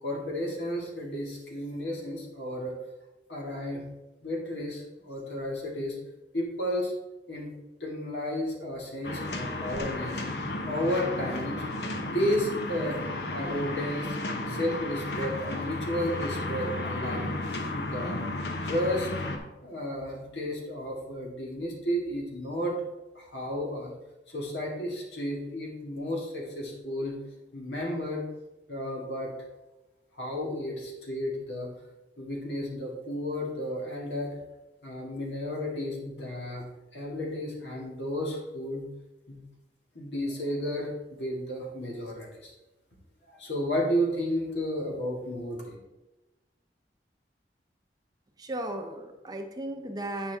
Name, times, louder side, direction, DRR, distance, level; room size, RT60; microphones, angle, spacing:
voice 1, 0.0-2.7 3.3-3.8 4.2-6.0 6.3-6.9 7.3-7.5 7.8-10.2 10.7-11.6 12.0-14.2 14.5-17.3 17.7-18.2 18.6-19.1 19.6-22.7 23.1-23.9 24.3-27.2 27.5-28.3 28.7-29.3 30.2-31.7 32.2-34.3 34.8-38.9 39.3-39.4 40.0-42.5 43.3-45.7, equal, 90° left, -2 dB, 2.1 m, -32 dB
sound 1, 9.0-19.4, left 2 dB, 70° left, 0.9 m, -33 dB
voice 2, 48.4-50.4, right 1 dB, 20° right, 4 dB, 0.6 m, -35 dB
8.7 x 5.5 x 3.5 m, 1.0 s
head